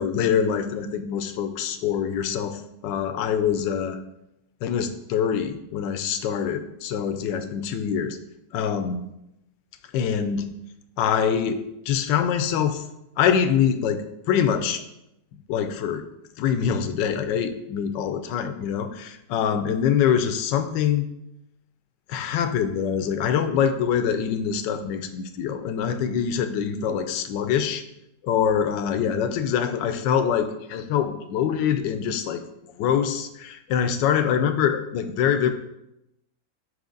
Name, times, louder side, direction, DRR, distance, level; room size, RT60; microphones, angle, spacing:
voice 1, 0.0-4.0 4.6-8.2 8.5-9.0 9.9-10.5 11.0-11.6 11.9-12.8 13.2-14.0 14.3-14.8 15.5-16.0 16.4-21.0 22.1-27.8 28.2-32.4 32.8-35.5, left 8 dB, 90° left, 9 dB, 1.3 m, -24 dB
5.7 x 4.8 x 3.8 m, 0.85 s
omnidirectional pair, 1.9 m